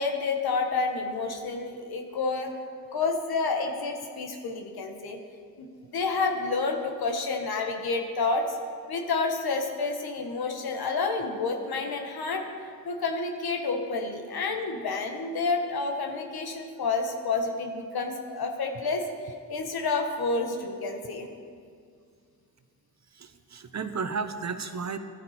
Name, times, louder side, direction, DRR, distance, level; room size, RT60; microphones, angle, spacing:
voice 1, 0.0-2.5 2.9-5.2 5.6-8.6 8.9-21.3, left 3 dB, 90° left, 4 dB, 1.4 m, -29 dB
voice 2, 23.1-25.0, right 5 dB, 50° right, 9 dB, 0.9 m, -33 dB
15.0 x 11.5 x 4.3 m, 2.1 s
cardioid pair, 65°, 36 cm